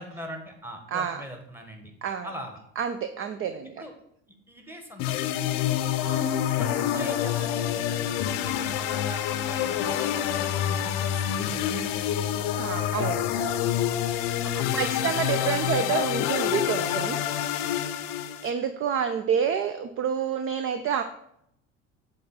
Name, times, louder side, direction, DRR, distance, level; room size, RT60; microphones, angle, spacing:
voice 1, 0.0-1.9 2.2-2.6 3.8-3.9 4.5-5.6 6.0-6.3 6.6-8.1 8.4-11.9 14.3-15.1 15.4-16.2, equal, 5° right, 3 dB, 1.4 m, -41 dB
voice 2, 0.9-1.2 2.0-2.3 2.8-3.8 12.5-13.3 14.8-17.2 17.5-17.6 18.4-21.0, right 7 dB, 35° right, 10 dB, 0.5 m, -28 dB
sound 1, 5.0-18.5, left 10 dB, 60° left, 0.6 m, -27 dB
7.5 x 2.5 x 5.6 m, 0.74 s
hypercardioid pair, 70°, 38 cm